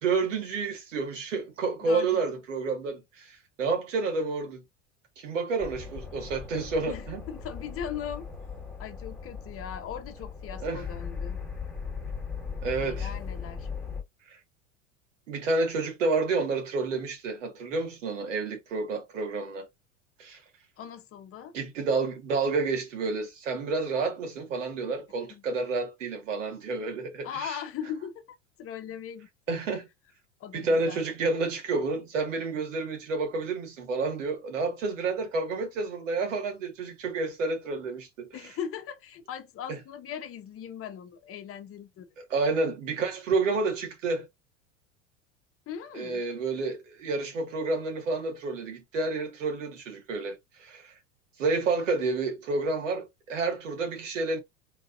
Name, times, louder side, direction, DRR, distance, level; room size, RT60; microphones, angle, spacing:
voice 1, 0.0-4.6 5.2-7.2 10.6-10.8 12.6-13.1 14.3-14.4 15.3-19.7 20.2-20.4 21.5-27.6 29.5-29.9 30.5-38.3 39.7-39.8 42.2-44.3 45.9-50.9 51.4-54.4, right 3 dB, 75° right, 1.9 m, -30 dB
voice 2, 1.8-2.3 6.9-8.3 8.8-11.4 12.8-13.7 20.8-21.5 25.3-25.4 27.2-28.2 28.6-29.3 30.4-31.0 38.3-42.1 45.7-46.2, left 8 dB, 35° left, 1.1 m, -39 dB
sound 1, 5.6-14.0, left 6 dB, 5° left, 1.6 m, -38 dB
3.9 x 3.6 x 2.5 m
hypercardioid pair, 85°, 37 cm